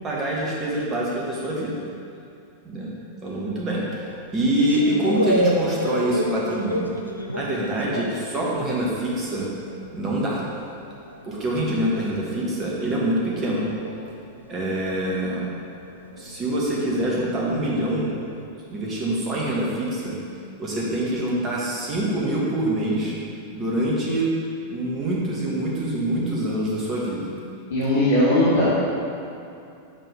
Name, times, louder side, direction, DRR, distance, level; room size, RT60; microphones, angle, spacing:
voice 1, 0.0-1.8 2.6-2.9 3.2-4.1 4.3-6.9 7.3-9.5 9.9-10.5 11.2-13.6 14.5-15.4 16.2-18.1 18.7-20.2 20.6-23.1 23.5-24.4 24.7-27.3, right 1 dB, 25° right, -5 dB, 1.7 m, -25 dB
sound 1, 3.9-9.1 9.4-18.3, equal, 85° left, 0.5 m, -31 dB
voice 2, 27.7-28.7, left 1 dB, 60° left, -10 dB, 1.6 m, -19 dB
7.5 x 5.9 x 3.6 m, 2.6 s
figure-of-eight pair, 90°, 0 cm